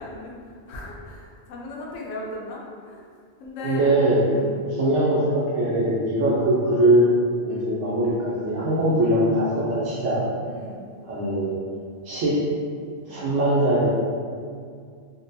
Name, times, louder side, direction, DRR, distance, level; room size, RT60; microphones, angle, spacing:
voice 1, 0.0-3.1 3.4-4.6 7.5-7.7 10.5-10.9 13.1-13.3, left 2 dB, 85° left, -3 dB, 1.0 m, -37 dB
voice 2, 3.6-4.2 4.8-7.1 7.4-10.2 11.1-11.6 12.0-12.4 13.1-13.9, right 1 dB, 80° right, -8 dB, 0.9 m, -21 dB
3.7 x 2.2 x 2.6 m, 2.2 s
omnidirectional pair, 1.2 m